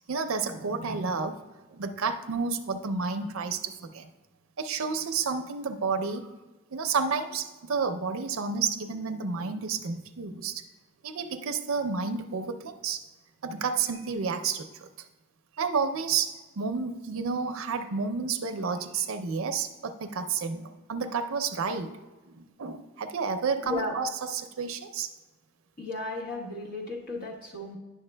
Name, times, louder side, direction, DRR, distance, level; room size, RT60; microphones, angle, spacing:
voice 1, 0.1-1.4 1.7-4.1 4.6-6.3 6.7-10.6 11.0-13.0 13.4-15.1 15.6-22.0 22.3-25.1, right 5 dB, 85° right, 7 dB, 0.5 m, -31 dB
voice 2, 23.6-23.9 25.8-27.8, left 2 dB, 40° left, -1 dB, 1.1 m, -34 dB
10.5 x 6.5 x 2.2 m, 1.2 s
head